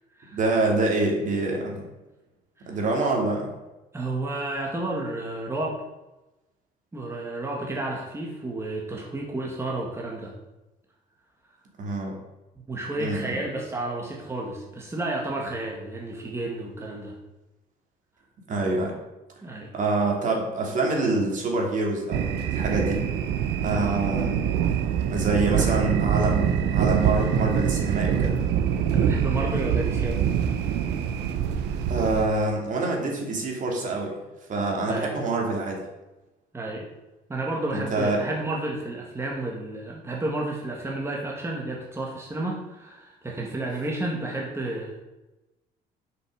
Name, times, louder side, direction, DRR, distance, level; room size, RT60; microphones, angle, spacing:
voice 1, 0.3-1.9 2.7-3.5 11.8-12.2 13.0-13.4 18.5-18.9 19.7-23.0 23.6-24.4 25.1-28.4 31.9-34.2 34.5-35.8 37.7-38.2, right 2 dB, 50° right, 0 dB, 2.6 m, -26 dB
voice 2, 3.9-5.8 6.9-10.3 12.7-17.2 19.4-19.7 23.7-24.1 25.6-25.9 28.9-30.2 34.9-35.3 36.5-36.8 37.3-45.0, right 2 dB, 15° right, -2 dB, 1.9 m, -31 dB
sound 1, 22.1-32.3, right 8 dB, 90° right, 0.9 m, -24 dB
7.7 x 6.2 x 6.5 m, 1.0 s
cardioid pair, 110°, 17 cm